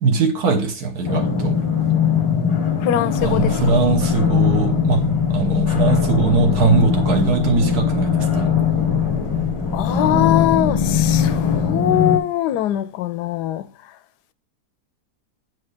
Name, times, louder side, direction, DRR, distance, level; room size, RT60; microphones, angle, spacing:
voice 1, 0.0-1.6 3.2-5.0 5.3-8.5, right 4 dB, 70° right, 1.6 m, -20 dB
sound 1, 1.0-12.2, left 6 dB, 50° left, 0.3 m, -20 dB
voice 2, 2.8-3.6 9.7-14.0, left 12 dB, 85° left, 1.2 m, -22 dB
Aircraft, 3.2-11.7, left 3 dB, 35° right, 1.4 m, -34 dB
7.9 x 4.8 x 3.3 m
omnidirectional pair, 1.7 m